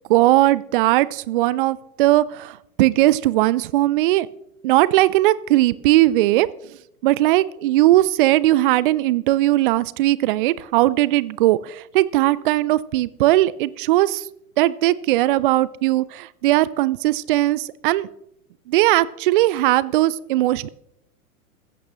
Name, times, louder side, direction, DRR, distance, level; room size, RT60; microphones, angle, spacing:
voice 1, 0.1-4.3 4.6-6.5 7.0-14.3 14.6-18.1 18.7-20.7, right 16 dB, 40° right, 20 dB, 0.4 m, -18 dB
15.5 x 15.0 x 3.0 m, 0.77 s
figure-of-eight pair, 100°, 43 cm